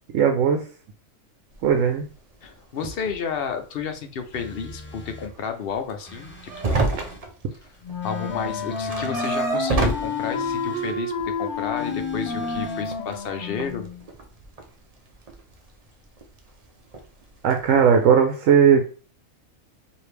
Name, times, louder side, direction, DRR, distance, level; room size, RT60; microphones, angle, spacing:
voice 1, 0.1-0.6 1.6-2.1 17.4-18.8, right 7 dB, 75° right, 4 dB, 1.0 m, -17 dB
sound 1, 1.5-1.8 2.4-2.5 2.8-3.5 3.8-3.9 4.1-4.2 4.7-4.9 5.2-8.0 8.2-10.6 11.2-13.2 13.5-14.7 15.1-15.9 16.2-16.7 16.9-17.2 17.5-17.9, right 3 dB, 35° right, 0.6 m, -29 dB
voice 2, 2.4-7.0 8.0-13.9, left 6 dB, 55° left, 7 dB, 0.7 m, -31 dB
sound 2, 4.3-5.3 6.1-7.3 8.0-9.2 9.9-11.0 11.8-12.9, left 1 dB, 15° left, 0.5 m, -41 dB
Wind instrument woodwind instrument, 7.8-14.0, left 4 dB, 40° left, 1.4 m, -30 dB
4.8 x 2.7 x 3.3 m, 0.39 s
omnidirectional pair, 1.4 m